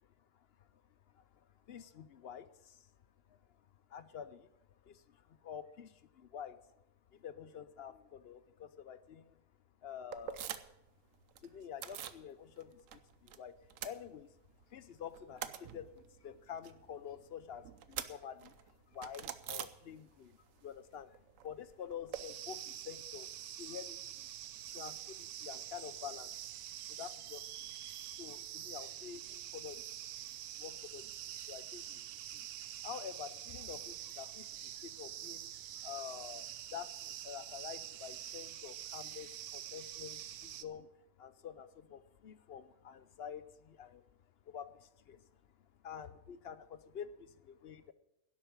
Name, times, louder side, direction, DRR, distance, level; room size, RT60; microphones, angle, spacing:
voice 1, 1.7-2.8 3.3-3.4 3.9-4.5 4.8-6.6 7.1-9.4 9.8-10.5 11.4-13.6 13.8-14.3 14.7-18.5 18.9-21.2 21.4-24.3 24.7-26.4 26.9-27.7 28.2-29.8 30.2-30.3 30.5-31.2 31.5-32.0 32.3-32.5 32.8-35.5 35.8-40.9 41.2-44.0 44.5-45.2 45.8-47.9, left 8 dB, 55° left, 14 dB, 0.7 m, -48 dB
sound 1, 10.1-10.9 11.1-12.2 12.6-13.4 13.6-14.6 15.0-20.3 20.6-22.2, right 10 dB, 65° right, 1.0 m, -46 dB
sound 2, 22.1-40.6, right 12 dB, 90° right, 1.2 m, -46 dB
11.0 x 8.0 x 8.3 m, 0.85 s
omnidirectional pair, 1.5 m